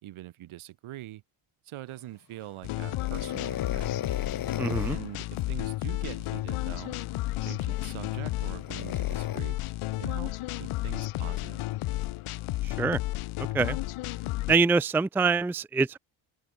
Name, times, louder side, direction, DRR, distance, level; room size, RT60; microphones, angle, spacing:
voice 1, 0.0-1.2 1.6-3.9 4.9-7.0 7.4-9.6 10.0-10.3 10.6-11.6, right 15 dB, 75° right, 4.5 m, -43 dB
sound 1, 2.6-14.5, left 17 dB, 85° left, 3.9 m, -32 dB
sound 2, 3.0-5.1 6.9-7.0 8.6-9.4, left 10 dB, 45° left, 1.4 m, -36 dB
voice 2, 4.6-5.0 12.6-13.0 13.5-13.8 14.5-16.0, right 4 dB, 5° right, 0.4 m, -25 dB
open air
cardioid pair, 100°, 49 cm